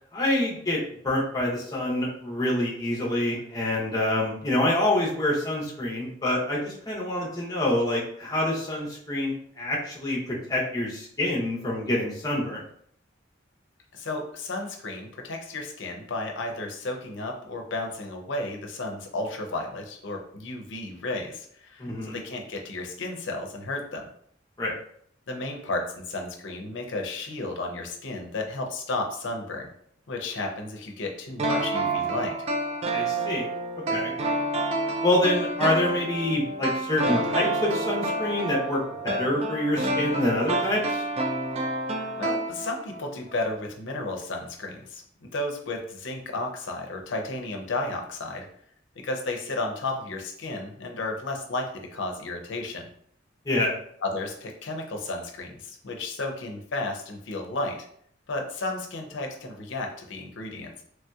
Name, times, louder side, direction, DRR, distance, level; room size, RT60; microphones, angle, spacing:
voice 1, 0.1-12.6 21.8-22.2 24.6-24.7 32.9-33.5 33.9-34.1 35.0-41.0 53.5-53.7, left 1 dB, 20° left, -4 dB, 0.7 m, -26 dB
voice 2, 13.9-24.1 25.3-29.7 30.1-32.3 42.2-48.5 49.0-52.9 54.0-57.8 58.3-60.8, left 2 dB, 80° left, 2 dB, 0.6 m, -33 dB
sound 1, 31.4-43.0 43.3-43.4, right 2 dB, 35° right, 0.3 m, -28 dB
3.1 x 2.8 x 2.3 m, 0.65 s
head